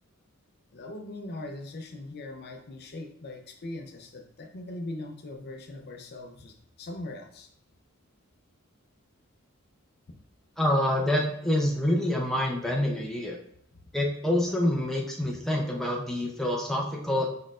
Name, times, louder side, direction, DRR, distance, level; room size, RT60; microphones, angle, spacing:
voice 1, 0.7-7.5, left 2 dB, 50° left, 4 dB, 0.6 m, -40 dB
voice 2, 10.6-13.4 13.9-17.3, left 1 dB, ahead, -2 dB, 0.6 m, -27 dB
5.3 x 4.1 x 2.4 m, 0.70 s
head